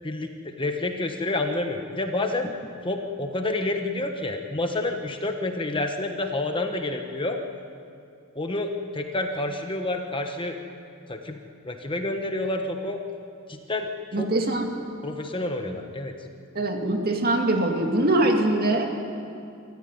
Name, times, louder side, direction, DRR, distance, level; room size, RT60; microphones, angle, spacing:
voice 1, 0.6-2.5 2.8-7.4 8.3-10.6 11.1-11.4 11.6-13.0 13.5-13.9 14.2-14.3 15.0-16.1, left 2 dB, 25° left, 4 dB, 1.3 m, -28 dB
voice 2, 14.1-14.7 16.5-19.0, right 1 dB, 45° right, 3 dB, 2.3 m, -23 dB
25.5 x 14.0 x 9.7 m, 2.5 s
head